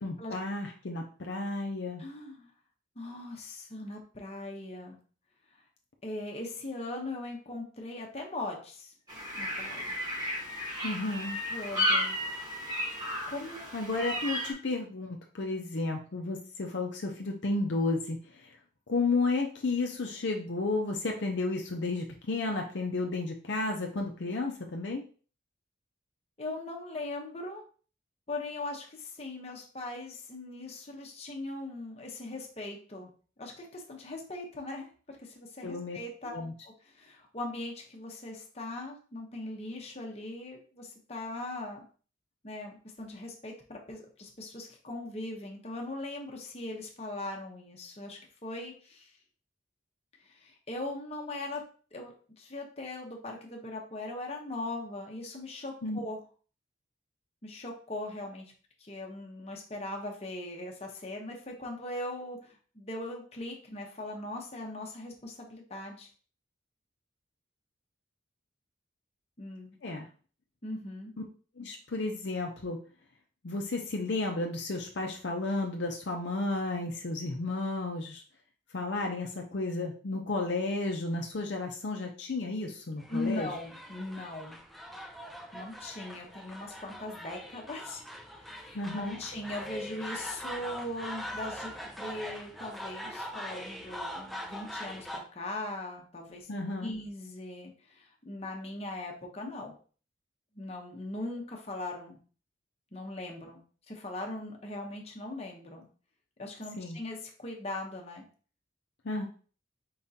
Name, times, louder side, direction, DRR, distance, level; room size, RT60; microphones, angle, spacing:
voice 1, 0.0-2.0 10.8-11.4 13.7-18.5 18.9-25.1 35.6-36.0 36.3-36.5 55.8-56.0 69.8-70.1 71.6-72.8 73.4-78.2 78.7-83.5 88.7-89.2 96.5-96.9 106.8-107.0 109.0-109.3, left 3 dB, 60° left, 1 dB, 0.5 m, -32 dB
voice 2, 2.0-2.5 3.0-5.0 6.0-8.9 9.3-10.0 11.5-12.2 13.3-13.7 26.4-27.6 28.3-33.1 33.4-41.8 42.4-49.1 50.2-51.6 51.9-56.2 57.4-58.5 58.8-66.1 69.4-69.8 70.6-71.1 83.1-84.6 85.5-88.0 88.3-96.5 96.8-99.8 100.5-102.2 102.9-105.9 106.4-108.2, left 2 dB, 30° left, 1 dB, 0.8 m, -40 dB
sound 1, 9.1-14.5, left 1 dB, 20° right, 1.2 m, -33 dB
sound 2, 83.0-95.2, equal, ahead, 0.4 m, -42 dB
4.7 x 3.6 x 2.7 m, 0.41 s
head